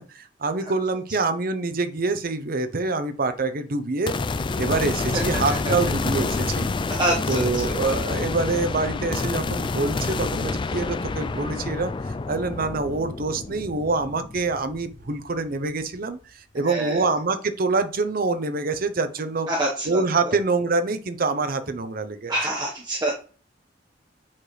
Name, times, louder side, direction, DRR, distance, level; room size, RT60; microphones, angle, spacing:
voice 1, 0.0-4.1 4.6-6.7 7.3-11.9 12.3-19.5 19.9-22.4, right 3 dB, 50° right, 9 dB, 0.8 m, -26 dB
sound 1, 4.1-15.4, left 3 dB, 25° left, 0.3 m, -28 dB
voice 2, 7.0-7.5 16.6-17.1 19.5-20.0 20.2-20.3 22.3-23.1, right 1 dB, 25° right, -4 dB, 1.3 m, -26 dB
8.4 x 4.9 x 3.3 m, 0.40 s
head